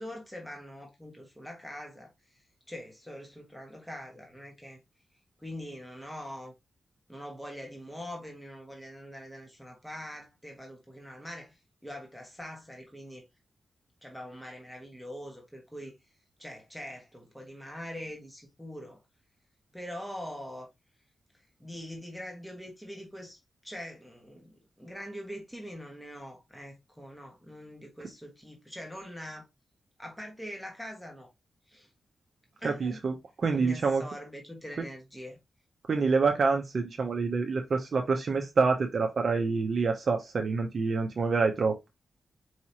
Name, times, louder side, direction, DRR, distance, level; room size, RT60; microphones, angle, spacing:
voice 1, 0.0-2.1 2.7-4.8 5.4-6.5 7.1-11.6 11.8-13.2 14.0-16.0 16.4-19.0 19.7-20.7 21.6-29.5 30.0-31.3 31.7-31.9 32.6-33.0 33.6-35.4, equal, ahead, 1.3 m, -43 dB
voice 2, 32.6-34.0 35.9-41.7, right 4 dB, 55° right, 0.7 m, -27 dB
4.8 x 2.9 x 2.8 m
cardioid pair, 95°, 0 cm